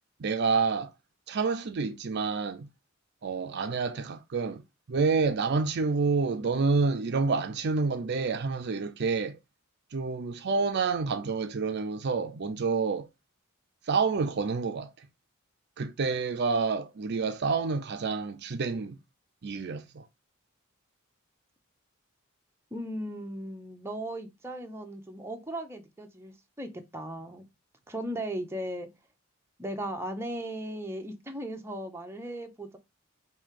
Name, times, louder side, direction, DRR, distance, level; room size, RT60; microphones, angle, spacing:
voice 1, 0.2-0.9 1.3-2.7 3.2-4.6 4.9-9.4 9.9-13.1 13.9-14.9 15.8-19.0 19.4-20.0, right 4 dB, 55° right, 0.5 m, -28 dB
voice 2, 22.7-27.4 27.9-28.9 29.6-32.8, right 1 dB, 10° right, 0.7 m, -37 dB
5.1 x 2.7 x 3.7 m
head